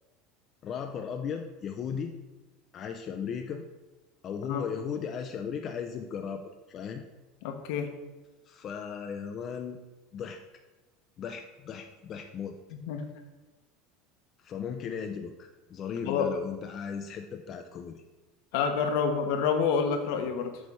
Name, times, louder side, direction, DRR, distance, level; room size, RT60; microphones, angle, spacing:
voice 1, 0.6-2.1 2.7-3.6 4.2-7.0 8.5-9.8 10.1-10.4 11.2-12.6 14.4-18.0, left 7 dB, 35° left, 5 dB, 0.4 m, -36 dB
voice 2, 7.4-7.9 12.9-13.0 16.0-16.3 18.5-20.6, left 6 dB, 70° left, 5 dB, 1.0 m, -28 dB
7.6 x 3.3 x 5.4 m, 1.2 s
supercardioid pair, 150°, 0 cm